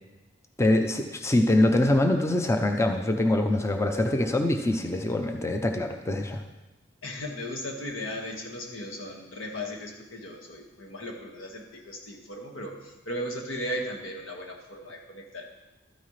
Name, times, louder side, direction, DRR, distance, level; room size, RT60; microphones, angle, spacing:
voice 1, 0.6-6.4, left 1 dB, 15° left, 5 dB, 0.5 m, -24 dB
voice 2, 7.0-15.4, equal, 85° left, 0 dB, 1.7 m, -36 dB
12.5 x 9.5 x 3.2 m, 1.1 s
head